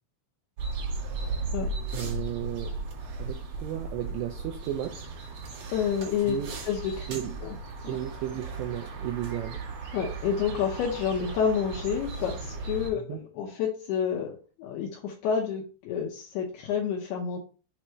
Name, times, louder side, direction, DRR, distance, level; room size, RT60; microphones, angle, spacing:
sound 1, 0.6-12.9, right 3 dB, 55° right, 2.8 m, -36 dB
voice 1, 1.9-2.7 3.2-5.1 6.3-6.5 7.1-7.4 7.9-9.6 13.1-13.2, right 12 dB, 85° right, 4 dB, 2.6 m, -34 dB
voice 2, 5.7-6.4 6.7-7.1 7.4-7.6 7.8-8.0 9.9-17.4, left 7 dB, 80° left, -1 dB, 2.3 m, -29 dB
7.2 x 3.1 x 4.5 m, 0.35 s
omnidirectional pair, 5.7 m